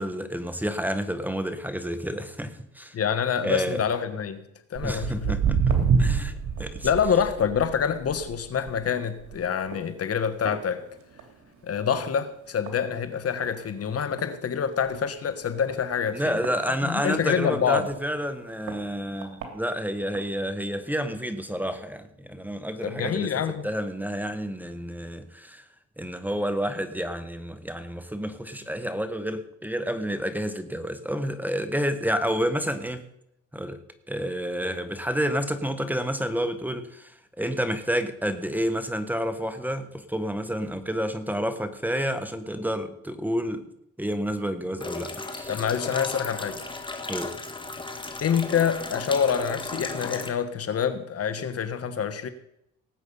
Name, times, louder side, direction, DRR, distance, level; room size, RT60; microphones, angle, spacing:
voice 1, 0.0-3.0 3.4-3.8 4.8-6.9 16.1-23.3 23.6-25.6 26.0-33.0 33.5-33.8 34.1-43.6 44.0-45.5 47.1-47.3, equal, 5° right, 1.4 m, -29 dB
voice 2, 2.9-4.4 4.7-5.3 6.8-10.8 11.6-16.4 16.8-17.9 22.8-23.7 45.5-46.6 48.2-52.3, left 7 dB, 50° left, 1.2 m, -26 dB
Walk footsteps, 4.8-11.4 11.7-12.1 12.7-12.8 13.4-13.5 13.9-14.0 14.2-14.3 14.9-15.0 15.7-17.3 17.9-18.0 18.7-18.8 19.2-19.5 20.1-20.2, right 6 dB, 75° right, 3.0 m, -28 dB
sound 1, 44.8-50.3, left 3 dB, 15° left, 1.7 m, -35 dB
18.5 x 8.1 x 5.5 m
cardioid pair, 90°, 30 cm